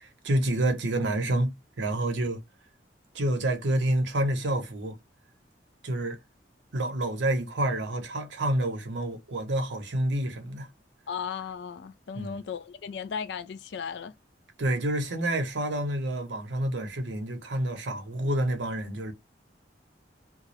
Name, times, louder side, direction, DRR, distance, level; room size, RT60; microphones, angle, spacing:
voice 1, 0.0-2.4 3.1-5.0 5.8-6.2 6.7-10.7 12.1-12.3 14.6-19.1, right 1 dB, 85° right, 0.7 m, -28 dB
voice 2, 11.1-14.1, left 6 dB, 65° left, 0.3 m, -36 dB
2.3 x 2.0 x 2.6 m
head